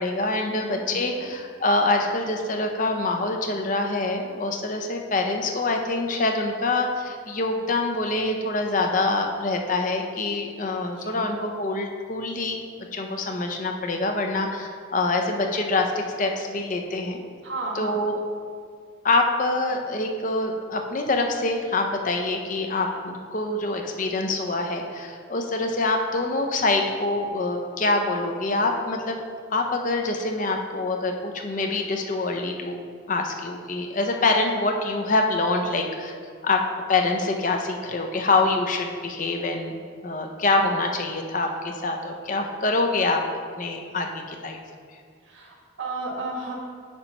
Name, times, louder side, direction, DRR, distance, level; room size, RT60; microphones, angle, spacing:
voice 1, 0.0-12.6 12.9-17.2 17.7-18.2 19.0-29.2 29.5-32.8 33.1-36.2 36.4-36.6 36.9-39.8 40.0-43.2 43.6-44.6, left 2 dB, 40° left, 3 dB, 0.6 m, -25 dB
voice 2, 0.9-1.3 11.0-11.3 17.4-18.0 45.2-46.5, right 2 dB, 75° right, -1 dB, 1.3 m, -33 dB
8.8 x 3.0 x 5.2 m, 2.1 s
head